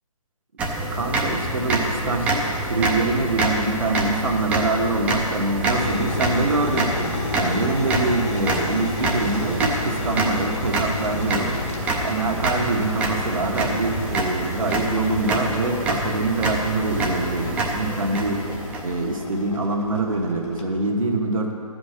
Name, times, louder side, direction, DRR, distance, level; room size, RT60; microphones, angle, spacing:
sound 1, 0.6-19.3, right 2 dB, 5° right, 0.5 m, -26 dB
voice 1, 0.9-7.0 7.3-11.6 12.0-18.4 18.8-21.5, right 2 dB, 65° right, 1 dB, 1.3 m, -24 dB
sound 2, 5.7-20.6, left 2 dB, 50° left, 1.2 m, -34 dB
11.5 x 5.2 x 6.5 m, 2.7 s
figure-of-eight pair, 140°, 18 cm